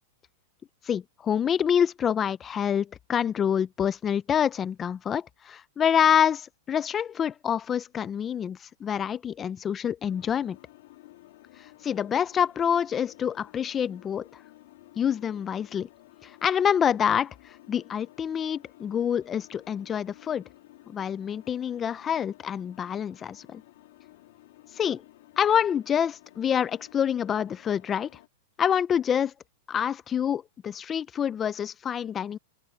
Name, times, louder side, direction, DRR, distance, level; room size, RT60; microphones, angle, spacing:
voice 1, 0.8-10.6 11.8-14.3 15.0-15.9 16.2-20.4 20.9-23.6 24.8-25.0 25.4-28.1 28.6-29.3 29.7-32.4, left 8 dB, 15° left, 0.4 m, -27 dB
sound 1, 10.0-28.3, left 17 dB, 60° left, 2.4 m, -54 dB
open air
supercardioid pair, 160°, 0 cm